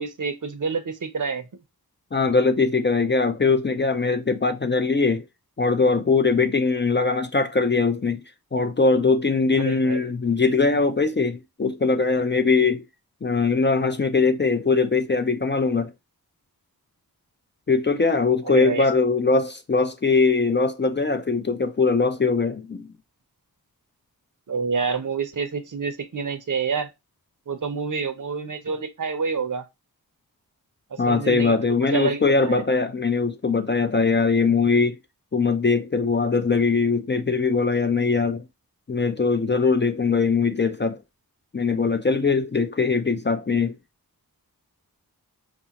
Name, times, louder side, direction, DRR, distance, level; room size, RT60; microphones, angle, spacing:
voice 1, 0.0-1.4 9.5-10.2 18.5-18.8 24.5-26.9 27.5-29.6 30.9-31.6 31.9-32.6, right 5 dB, 55° right, 0.7 m, -28 dB
voice 2, 2.1-5.2 5.6-8.2 8.5-12.9 13.2-15.9 17.7-22.9 31.0-35.0 35.3-38.4 38.9-41.0 41.5-43.8, left 4 dB, 30° left, 0.4 m, -21 dB
4.9 x 2.5 x 2.8 m
wide cardioid pair, 60°, 37 cm